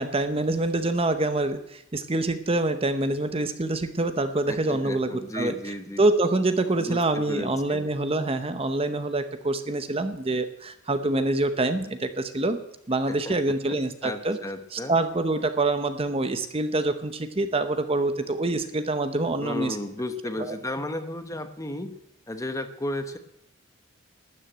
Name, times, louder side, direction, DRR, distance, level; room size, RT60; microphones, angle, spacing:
voice 1, 0.0-5.5 6.0-12.6 12.9-14.4 14.7-19.8 20.4-20.5, right 2 dB, 25° right, 10 dB, 0.8 m, -26 dB
voice 2, 4.5-6.0 6.8-7.8 13.1-13.8 14.0-15.0 19.3-22.0 22.3-23.2, left 1 dB, 15° left, 8 dB, 1.0 m, -34 dB
12.5 x 9.8 x 9.0 m, 0.82 s
head